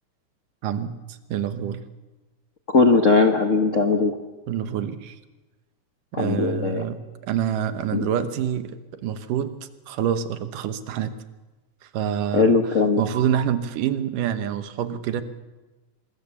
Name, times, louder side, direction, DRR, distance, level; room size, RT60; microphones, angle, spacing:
voice 1, 0.6-1.8 4.5-5.2 6.1-8.8 9.0-9.5 9.9-11.1 11.8-15.2, right 9 dB, 90° right, 10 dB, 2.8 m, -27 dB
voice 2, 2.7-4.2 6.1-6.8 7.9-8.1 12.3-13.0, left 4 dB, 75° left, 5 dB, 0.7 m, -19 dB
25.5 x 21.0 x 7.1 m, 1.2 s
omnidirectional pair, 3.6 m